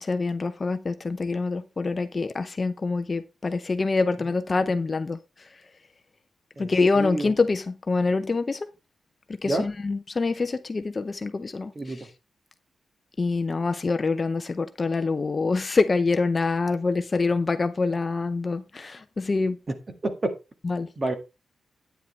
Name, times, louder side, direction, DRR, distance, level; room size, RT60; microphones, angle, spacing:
voice 1, 0.0-5.2 6.6-8.7 9.4-11.7 13.2-19.6 20.6-20.9, left 3 dB, 30° left, 0.6 m, -25 dB
voice 2, 6.6-7.3 9.4-9.7 11.7-12.1 19.7-19.8 20.0-20.3 21.0-21.1, right 2 dB, 30° right, 1.7 m, -29 dB
10.0 x 9.3 x 3.2 m
wide cardioid pair, 155°, 0 cm